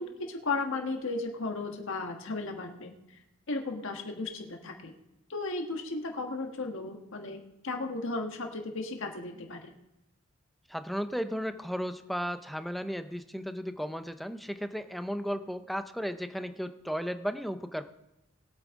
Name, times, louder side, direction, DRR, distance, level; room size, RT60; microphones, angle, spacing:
voice 1, 0.0-2.9 3.5-4.9 5.3-9.7, left 3 dB, 65° left, 3 dB, 1.5 m, -35 dB
voice 2, 10.7-17.8, equal, ahead, 9 dB, 0.6 m, -35 dB
20.5 x 8.8 x 3.7 m, 0.94 s
head